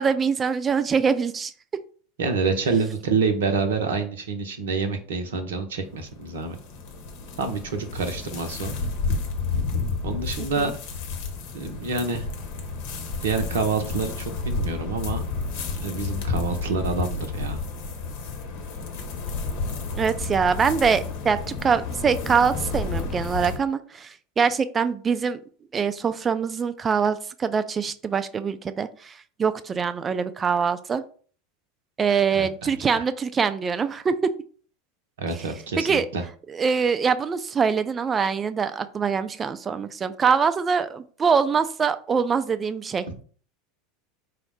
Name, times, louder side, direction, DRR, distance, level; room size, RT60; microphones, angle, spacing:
voice 1, 0.0-1.5 10.4-10.7 20.0-25.4 25.7-29.1 29.4-31.0 32.0-34.1 35.8-36.1 36.5-43.1, right 6 dB, 25° right, 12 dB, 0.4 m, -24 dB
voice 2, 2.2-6.6 7.4-8.8 10.0-10.7 11.5-12.3 13.2-15.2 15.8-17.6 32.3-33.0 35.2-36.2 43.1-43.2, right 4 dB, 65° right, 7 dB, 0.6 m, -27 dB
sound 1, 5.8-23.6, left 4 dB, 55° left, 0.9 m, -31 dB
4.8 x 2.1 x 4.7 m, 0.43 s
figure-of-eight pair, 80°, 0 cm